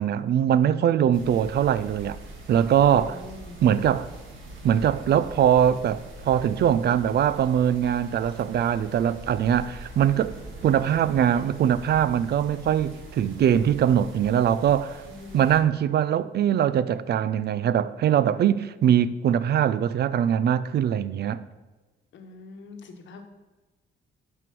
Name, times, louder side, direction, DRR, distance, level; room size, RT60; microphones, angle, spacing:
voice 1, 0.0-2.2 2.5-3.2 3.6-4.1 4.6-10.3 10.6-15.0 15.3-21.4, right 9 dB, 55° right, 0.4 m, -22 dB
sound 1, 1.1-15.6, right 2 dB, 75° right, 1.6 m, -43 dB
voice 2, 2.9-3.6 15.1-15.6 22.1-23.2, left 3 dB, 70° left, 1.2 m, -43 dB
6.0 x 5.4 x 6.0 m
cardioid pair, 90°, 20 cm